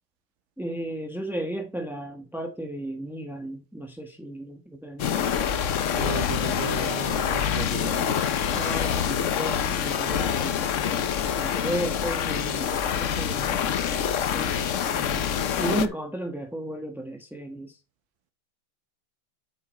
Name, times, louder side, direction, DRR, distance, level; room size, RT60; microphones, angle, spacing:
voice 1, 0.6-5.1 8.5-10.6 11.3-13.7 14.3-14.7 14.9-15.3 15.6-17.8, right 1 dB, ahead, 0.7 m, -34 dB
sound 1, 5.0-15.9, left 8 dB, 80° left, 0.6 m, -26 dB
voice 2, 5.9-8.2, right 8 dB, 70° right, 1.9 m, -35 dB
8.5 x 6.9 x 4.2 m
omnidirectional pair, 2.4 m